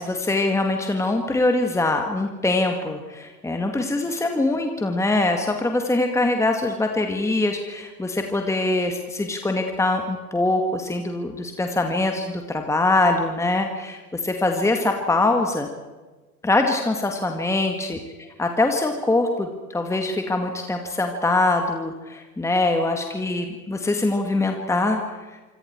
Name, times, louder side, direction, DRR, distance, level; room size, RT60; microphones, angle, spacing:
voice 1, 0.0-15.7 16.4-18.0 18.4-25.1, left 2 dB, 5° left, 4 dB, 2.1 m, -23 dB
26.5 x 26.0 x 4.8 m, 1.3 s
figure-of-eight pair, 90°, 46 cm